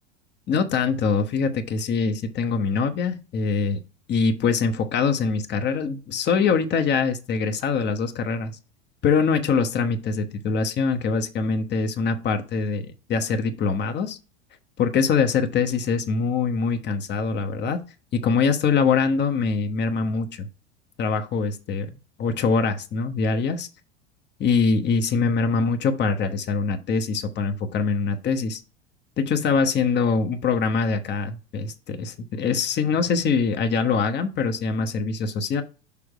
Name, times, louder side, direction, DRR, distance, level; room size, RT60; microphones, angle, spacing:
voice 1, 0.5-3.8 4.1-8.5 9.0-14.2 14.8-17.8 18.1-20.5 21.0-21.9 22.2-23.7 24.4-28.6 29.2-35.6, left 5 dB, 30° left, 9 dB, 1.1 m, -23 dB
6.3 x 3.6 x 4.9 m, 0.32 s
figure-of-eight pair, 85°, 34 cm